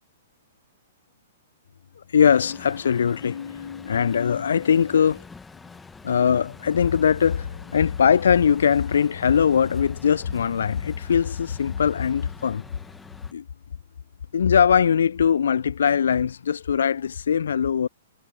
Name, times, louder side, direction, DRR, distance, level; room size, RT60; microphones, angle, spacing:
voice 1, 2.0-5.2 6.0-12.6 13.3-13.4 14.3-17.9, left 7 dB, 65° left, 0.5 m, -21 dB
Truck, 2.3-13.3, left 4 dB, 10° left, 1.3 m, -46 dB
figure-of-eight pair, 110°, 0 cm